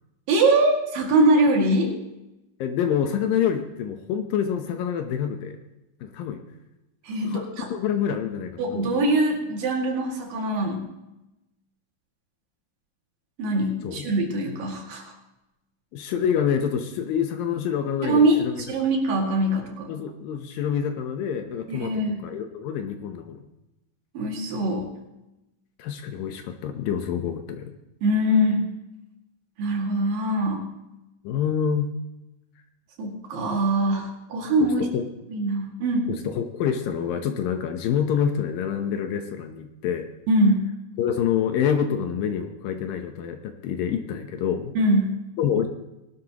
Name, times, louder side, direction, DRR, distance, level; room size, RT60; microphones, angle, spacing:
voice 1, 0.3-1.9 7.1-7.7 8.6-10.9 13.4-15.1 18.0-18.4 18.7-19.9 21.7-22.2 24.2-24.9 28.0-28.7 29.6-30.7 33.0-34.9 35.3-36.1 40.3-40.7 44.8-45.2, right 1 dB, 65° right, 0 dB, 3.7 m, -22 dB
voice 2, 2.6-5.6 6.0-6.4 7.3-8.9 13.8-14.1 15.9-18.6 19.9-23.4 25.8-27.7 31.2-31.9 34.8-35.1 36.1-40.1 41.0-44.7 45.4-45.7, left 8 dB, 75° left, 6 dB, 2.5 m, -27 dB
20.0 x 12.0 x 2.9 m, 0.94 s
omnidirectional pair, 4.4 m